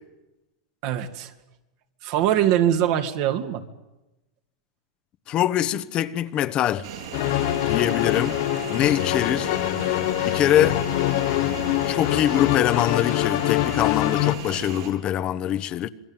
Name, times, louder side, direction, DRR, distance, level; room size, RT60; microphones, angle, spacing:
voice 1, 0.8-1.3 2.0-3.6, right 11 dB, 55° right, 2.5 m, -22 dB
voice 2, 5.3-6.9 7.6-8.4 8.7-9.6 10.2-10.8 11.9-15.9, left 11 dB, 35° left, 1.1 m, -23 dB
sound 1, 6.8-14.9, right 7 dB, 75° right, 7.9 m, -36 dB
sound 2, 7.1-14.4, left 15 dB, 60° left, 1.1 m, -24 dB
27.0 x 21.5 x 9.1 m
hypercardioid pair, 120°, 3 cm